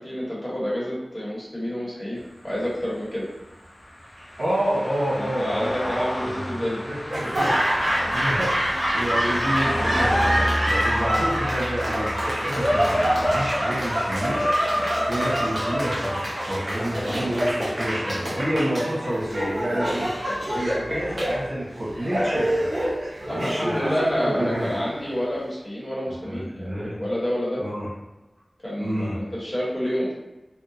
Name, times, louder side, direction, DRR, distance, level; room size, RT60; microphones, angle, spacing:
voice 1, 0.0-2.2 2.4-3.3 5.2-6.8 16.9-17.1 23.3-27.6 28.6-30.1, equal, 30° left, -7 dB, 1.1 m, -28 dB
sound 1, 2.2-18.2, equal, 80° left, 0.7 m, -32 dB
voice 2, 4.4-5.8 6.2-14.4 15.1-22.7 23.3-23.9 24.2-24.7 26.1-27.0 27.6-27.9 28.8-29.2, equal, 75° right, -7 dB, 1.1 m, -29 dB
Laughter / Applause, 7.1-25.2, equal, 50° right, 0.8 m, -25 dB
2.8 x 2.1 x 2.6 m, 1.0 s
wide cardioid pair, 65°, 0 cm